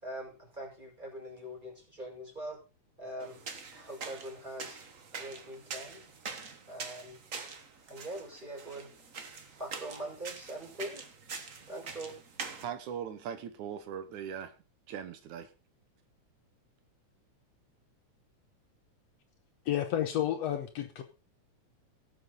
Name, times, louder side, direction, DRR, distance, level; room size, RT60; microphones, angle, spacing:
voice 1, 0.0-2.6 3.0-3.4 3.7-4.8 5.2-6.0 6.7-7.2 7.9-8.9 9.6-11.0 11.7-12.1, right 1 dB, 15° right, 5.4 m, -42 dB
sound 1, 3.2-12.6, right 5 dB, 45° right, 1.0 m, -44 dB
voice 2, 12.6-14.6 14.9-15.5, right 8 dB, 80° right, 2.5 m, -40 dB
voice 3, 19.7-21.0, left 11 dB, 65° left, 1.9 m, -31 dB
18.0 x 7.9 x 3.9 m
omnidirectional pair, 3.4 m